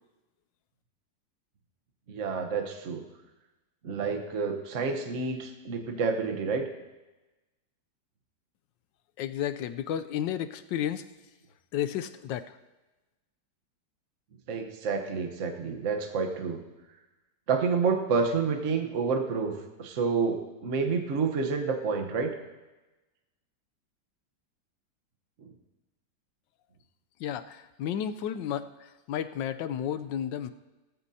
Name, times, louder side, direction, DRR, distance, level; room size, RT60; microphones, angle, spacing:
voice 1, 2.1-3.1 3.8-6.7 14.5-16.6 17.5-22.3 25.4-25.5, right 5 dB, 45° right, 4 dB, 1.3 m, -29 dB
voice 2, 9.2-11.1 11.7-12.6 27.2-30.5, left 10 dB, 80° left, 11 dB, 1.2 m, -32 dB
17.0 x 13.5 x 2.8 m, 1.1 s
omnidirectional pair, 2.0 m